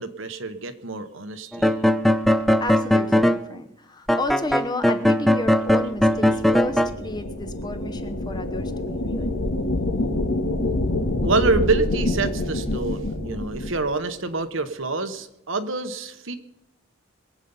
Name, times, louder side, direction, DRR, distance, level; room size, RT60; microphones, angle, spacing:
voice 1, 0.0-1.8 11.2-16.3, right 3 dB, 65° right, 9 dB, 1.1 m, -26 dB
sound 1, 1.5-3.4 4.1-6.9, equal, ahead, 0.4 m, -19 dB
voice 2, 2.6-9.4, left 2 dB, 20° left, 7 dB, 1.0 m, -32 dB
sound 2, 5.8-13.9, left 2 dB, 75° left, 1.8 m, -27 dB
22.5 x 8.3 x 5.5 m, 0.83 s
head